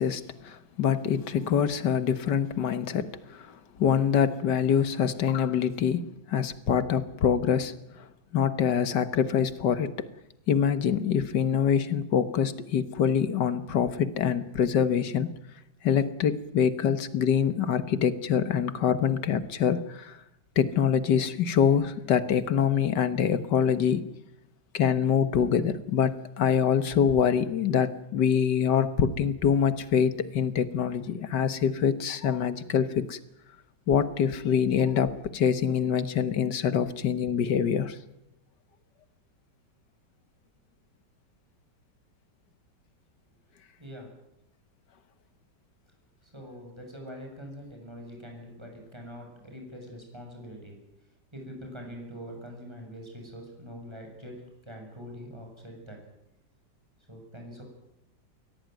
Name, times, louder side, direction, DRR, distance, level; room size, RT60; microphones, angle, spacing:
voice 1, 0.0-3.5 3.8-7.7 8.3-9.9 10.5-15.3 15.8-20.2 20.6-24.0 24.7-33.2 33.9-38.0, left 7 dB, 70° left, 13 dB, 1.9 m, -25 dB
voice 2, 46.2-50.8 51.3-54.3 54.6-56.0 57.1-57.6, equal, 15° right, 1 dB, 7.3 m, -43 dB
23.5 x 17.5 x 9.2 m, 0.88 s
omnidirectional pair, 2.0 m